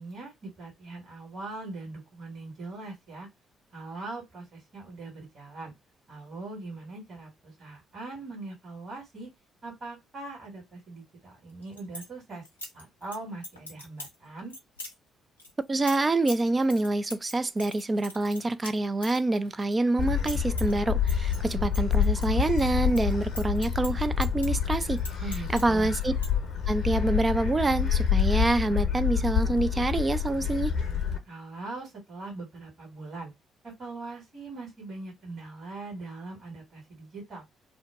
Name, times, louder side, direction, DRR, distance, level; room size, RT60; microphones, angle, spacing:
voice 1, 0.0-3.3 3.7-5.7 6.1-9.3 9.6-12.5 12.7-14.5 25.2-25.9 31.2-33.3 33.6-37.4, right 3 dB, 45° right, 1.6 m, -41 dB
sound 1, 11.5-12.1 12.5-13.2 13.4-14.2 14.5-14.9 15.4-19.7 20.0-20.8 21.1-22.6 22.9-25.6 25.9-26.3, left 1 dB, 85° left, 0.5 m, -42 dB
voice 2, 15.7-25.0 25.5-26.1 26.7-30.7, right 2 dB, 25° right, 0.3 m, -26 dB
Gull seagull, 20.0-31.2, left 7 dB, 50° left, 0.7 m, -27 dB
2.6 x 2.1 x 3.5 m
figure-of-eight pair, 45°, 0 cm